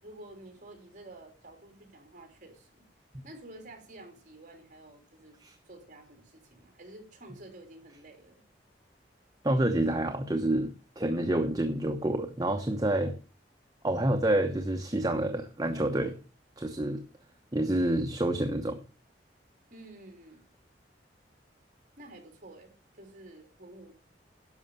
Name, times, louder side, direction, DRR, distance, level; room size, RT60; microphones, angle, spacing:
voice 1, 0.0-2.9 3.2-5.4 5.6-8.4 13.0-13.2 17.0-17.1 19.7-20.4 22.0-23.9, right 1 dB, 45° right, 4 dB, 3.2 m, -50 dB
voice 2, 9.4-13.1 13.8-16.1 16.6-17.0 17.5-18.8, right 1 dB, 20° right, 4 dB, 0.9 m, -28 dB
11.0 x 6.4 x 6.9 m, 0.36 s
head